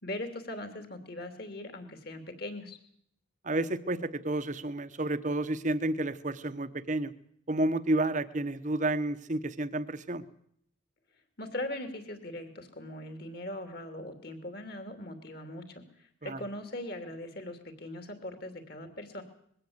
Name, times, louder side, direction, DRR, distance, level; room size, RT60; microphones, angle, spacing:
voice 1, 0.0-2.8 11.4-19.2, left 1 dB, 50° left, 8 dB, 2.9 m, -40 dB
voice 2, 3.4-7.1 7.5-10.2 16.2-16.4, right 2 dB, 35° right, 12 dB, 1.0 m, -30 dB
21.5 x 16.0 x 8.1 m, 0.69 s
head